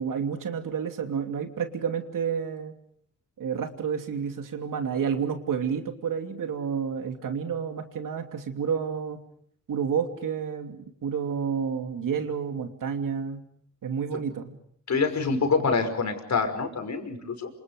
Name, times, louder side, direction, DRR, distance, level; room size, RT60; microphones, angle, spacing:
voice 1, 0.0-2.7 3.4-9.2 9.7-13.4 13.8-14.6, right 7 dB, 75° right, 6 dB, 2.9 m, -30 dB
voice 2, 14.9-17.5, left 4 dB, 55° left, 6 dB, 5.8 m, -26 dB
28.0 x 27.0 x 5.3 m, 0.64 s
cardioid pair, 95°, 33 cm